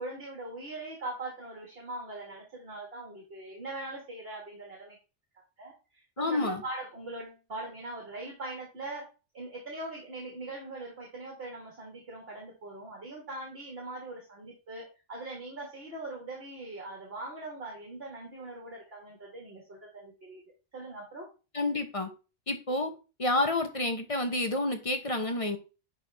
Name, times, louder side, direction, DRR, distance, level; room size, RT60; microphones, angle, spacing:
voice 1, 0.0-5.0 5.6-9.1 9.3-20.4 20.7-21.3, right 2 dB, 55° right, -1 dB, 1.8 m, -41 dB
voice 2, 6.2-6.6 21.5-22.1 22.5-22.9 23.2-25.6, left 2 dB, 30° left, 6 dB, 0.9 m, -29 dB
10.5 x 3.5 x 3.3 m, 0.32 s
omnidirectional pair, 1.2 m